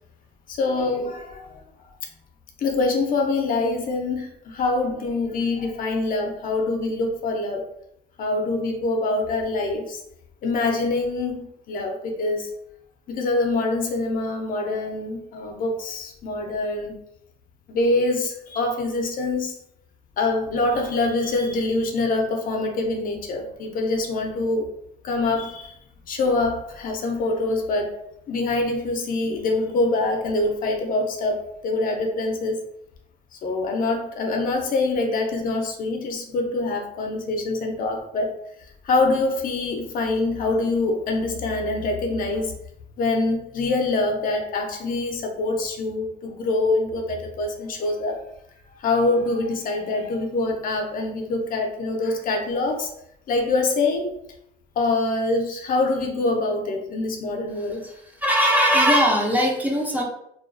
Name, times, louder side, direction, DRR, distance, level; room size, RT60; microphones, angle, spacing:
voice 1, 0.5-1.5 2.6-7.7 8.2-10.0 10.4-12.5 13.1-16.9 17.7-19.5 20.2-24.7 25.0-25.8 26.1-27.9 28.3-32.6 33.4-38.4 38.8-42.5 43.0-48.2 48.8-52.9 53.3-54.1 54.8-57.8, left 2 dB, 55° left, 2 dB, 0.5 m, -25 dB
voice 2, 58.2-60.0, equal, 10° right, -2 dB, 0.5 m, -19 dB
2.3 x 2.2 x 2.4 m, 0.74 s
cardioid pair, 110°, 17 cm